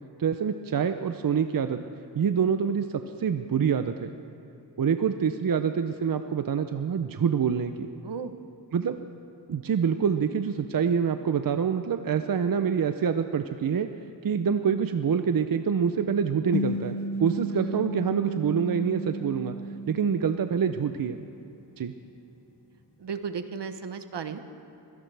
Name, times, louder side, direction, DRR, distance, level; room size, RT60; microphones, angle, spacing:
voice 1, 0.2-1.8 2.2-2.9 3.2-4.1 4.8-7.9 8.7-9.1 9.5-13.9 14.2-19.6 19.9-21.2 21.8-21.9, right 7 dB, 50° right, 8 dB, 0.6 m, -26 dB
voice 2, 8.0-8.4 17.5-17.9 23.0-24.4, right 6 dB, 70° right, 9 dB, 1.1 m, -35 dB
sound 1, 16.5-21.2, equal, 70° left, 1.4 m, -33 dB
24.5 x 17.5 x 3.4 m, 2.9 s
wide cardioid pair, 120°, 43 cm